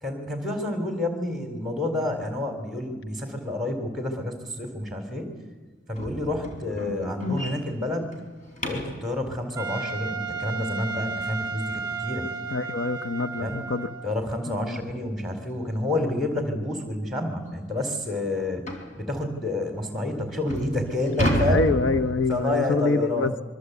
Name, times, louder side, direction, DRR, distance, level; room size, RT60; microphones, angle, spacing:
voice 1, 0.0-5.3 5.9-8.2 8.6-12.3 13.4-13.6 14.0-18.7 19.0-21.6 22.3-23.3, left 2 dB, ahead, 5 dB, 3.7 m, -29 dB
sound 1, 6.0-9.1 11.9-12.0 12.4-12.6 13.0-13.1 13.6-13.7 14.8-14.9 15.3-15.5 16.1-16.2 16.6-16.7 17.2-17.3 18.7-19.0 19.7-19.8 20.3-22.6, equal, 35° left, 4.1 m, -30 dB
Trumpet, 9.6-14.2, right 5 dB, 20° right, 1.1 m, -33 dB
voice 2, 12.5-13.9 14.5-14.8 21.3-23.3, left 3 dB, 65° left, 8 dB, 0.8 m, -26 dB
25.0 x 24.0 x 8.2 m, 1.4 s
head